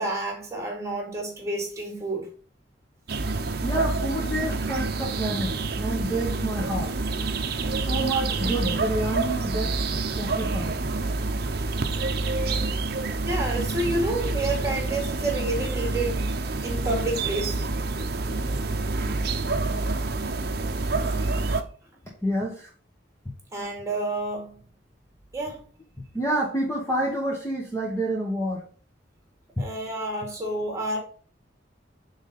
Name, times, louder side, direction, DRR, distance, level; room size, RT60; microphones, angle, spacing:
voice 1, 0.0-2.3 13.2-16.3 16.6-17.6 23.5-24.6 25.3-25.6 29.6-31.0, right 2 dB, 15° right, 2.0 m, -29 dB
sound 1, 3.1-21.6, right 3 dB, 55° right, 0.7 m, -27 dB
voice 2, 3.6-6.9 7.8-9.8 10.2-10.7 22.2-22.7 26.1-28.6, right 1 dB, 15° left, 1.2 m, -28 dB
6.3 x 4.0 x 5.2 m
head